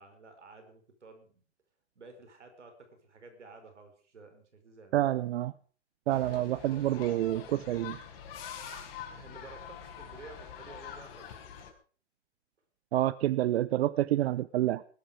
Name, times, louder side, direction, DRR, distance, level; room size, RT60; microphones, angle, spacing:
voice 1, 0.0-1.4 1.9-5.0 6.1-6.4 6.7-7.0 9.1-11.6, right 3 dB, 85° right, 7 dB, 5.0 m, -52 dB
voice 2, 4.9-5.5 6.1-8.0 12.9-14.8, right 14 dB, 65° right, 18 dB, 0.8 m, -28 dB
sound 1, 6.1-11.7, left 8 dB, 55° left, 4.7 m, -45 dB
20.5 x 12.5 x 5.0 m, 0.42 s
hypercardioid pair, 105°, 34 cm